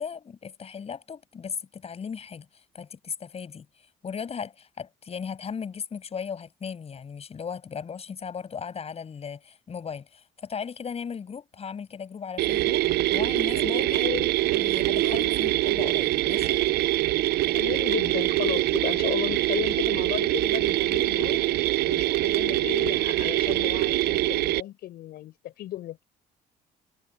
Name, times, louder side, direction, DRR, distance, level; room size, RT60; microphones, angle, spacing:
voice 1, 0.0-2.5 2.7-3.7 4.0-12.8 13.1-14.1 14.5-16.6, left 6 dB, 35° left, 7.5 m, -37 dB
sound 1, 12.4-24.6, right 16 dB, 75° right, 0.6 m, -24 dB
voice 2, 13.5-14.3 15.0-15.4 17.5-21.5 21.8-26.0, left 13 dB, 70° left, 4.7 m, -34 dB
cardioid pair, 110°, 17 cm